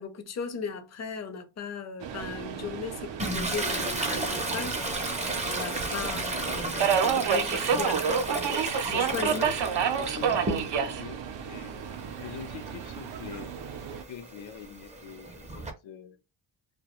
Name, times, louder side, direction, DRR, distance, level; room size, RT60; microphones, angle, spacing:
voice 1, 0.0-4.8 5.5-8.4 8.9-9.5, left 5 dB, 35° left, 0.5 m, -37 dB
Subway metro underground, 2.0-14.0, right 7 dB, 70° right, 0.5 m, -30 dB
Toilet flush, 3.2-11.0 11.4-15.7, right 2 dB, 15° right, 0.4 m, -34 dB
voice 2, 9.2-9.6 9.9-11.8 12.2-13.5 14.1-16.2, left 7 dB, 80° left, 0.6 m, -43 dB
2.2 x 2.2 x 2.9 m
cardioid pair, 115°, 45 cm